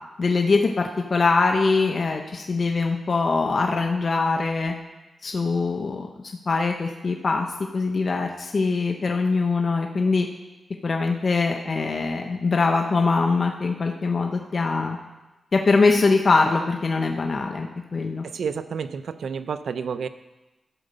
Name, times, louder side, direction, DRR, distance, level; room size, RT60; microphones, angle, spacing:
voice 1, 0.2-4.7 5.2-6.1 6.5-7.5 7.7-10.3 10.8-15.0 15.5-18.2, left 4 dB, 50° left, 2 dB, 0.8 m, -22 dB
voice 2, 18.2-20.1, right 6 dB, 80° right, 12 dB, 0.5 m, -30 dB
13.0 x 5.0 x 6.6 m, 1.1 s
cardioid pair, 75°, 0 cm